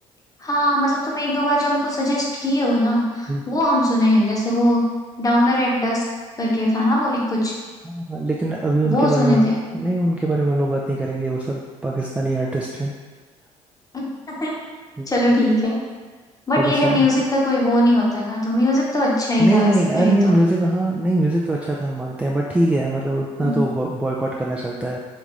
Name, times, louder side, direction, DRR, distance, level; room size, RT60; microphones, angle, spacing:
voice 1, 0.4-4.9 5.2-6.0 6.4-7.5 8.8-9.6 13.9-14.5 15.1-15.8 16.5-19.7 20.0-20.4 23.4-23.6, left 1 dB, 20° left, -3 dB, 1.0 m, -20 dB
voice 2, 7.8-12.9 15.0-15.1 16.6-17.1 19.4-25.0, right 1 dB, 5° right, -3 dB, 0.4 m, -22 dB
3.5 x 3.1 x 3.7 m, 1.4 s
figure-of-eight pair, 45°, 17 cm